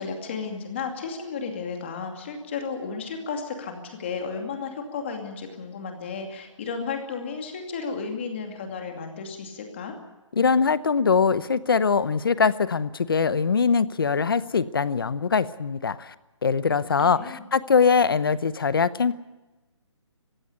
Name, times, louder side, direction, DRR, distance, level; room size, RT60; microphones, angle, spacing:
voice 1, 0.0-9.9 16.7-17.5, left 5 dB, 25° left, 4 dB, 2.5 m, -33 dB
voice 2, 10.3-16.1 16.4-19.2, left 5 dB, 45° left, 17 dB, 0.8 m, -22 dB
19.5 x 15.5 x 9.8 m, 1.1 s
hypercardioid pair, 175°, 16 cm